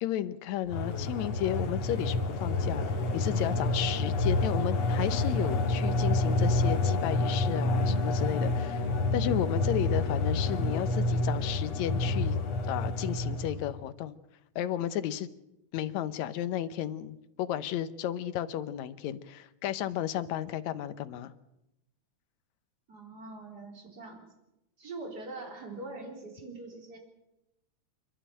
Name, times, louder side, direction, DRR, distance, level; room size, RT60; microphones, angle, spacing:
voice 1, 0.0-8.9 9.1-12.4 12.7-14.2 14.6-15.3 15.7-21.3, left 11 dB, 75° left, 12 dB, 2.3 m, -33 dB
sound 1, 0.7-13.7, left 2 dB, 60° left, 3.3 m, -28 dB
voice 2, 22.9-24.3 24.8-27.0, right 2 dB, 35° right, 3 dB, 4.4 m, -43 dB
28.5 x 11.5 x 9.0 m, 0.88 s
omnidirectional pair, 3.3 m